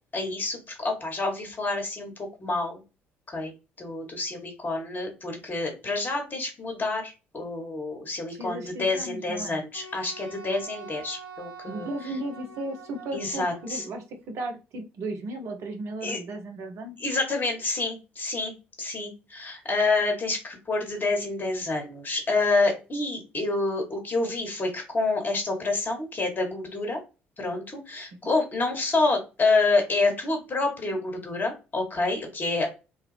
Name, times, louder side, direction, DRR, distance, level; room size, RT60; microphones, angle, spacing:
voice 1, 0.1-2.1 2.4-2.8 3.3-3.5 3.8-11.9 13.1-13.8 16.0-16.2 17.0-27.0 27.4-32.7, left 3 dB, 30° left, 3 dB, 1.3 m, -28 dB
voice 2, 8.3-9.6 11.7-17.0, right 2 dB, 55° right, 4 dB, 0.8 m, -35 dB
Wind instrument woodwind instrument, 9.7-14.0, right 4 dB, 70° right, 1.6 m, -45 dB
3.2 x 2.3 x 3.3 m, 0.29 s
figure-of-eight pair, 50°, 6 cm